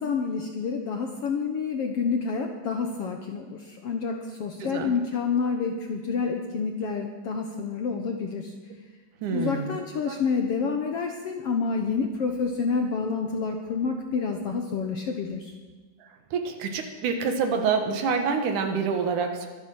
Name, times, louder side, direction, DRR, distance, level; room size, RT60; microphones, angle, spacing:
voice 1, 0.0-8.5 9.3-15.5, left 5 dB, 65° left, 3 dB, 1.6 m, -28 dB
voice 2, 4.6-5.0 9.2-10.1 16.3-19.5, right 5 dB, 70° right, 5 dB, 2.7 m, -27 dB
23.0 x 9.3 x 6.3 m, 1.3 s
omnidirectional pair, 3.8 m